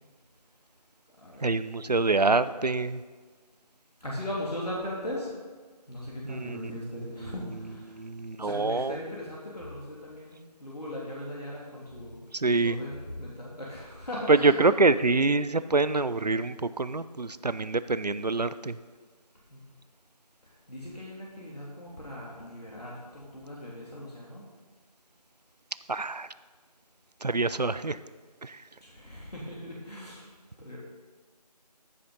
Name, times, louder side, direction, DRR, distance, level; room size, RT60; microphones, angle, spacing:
voice 1, 1.4-3.0 6.2-7.3 7.9-9.0 12.3-12.8 14.3-18.8 25.9-26.3 27.2-28.0 28.4-28.6, right 3 dB, 75° right, 14 dB, 0.6 m, -26 dB
voice 2, 4.0-5.3 5.9-8.0 8.4-12.2 12.5-14.6 19.5-19.7 20.7-24.4 28.8-30.2 30.6-30.8, left 1 dB, 70° left, -5 dB, 3.2 m, -39 dB
14.5 x 6.3 x 5.4 m, 1.4 s
figure-of-eight pair, 170°, 21 cm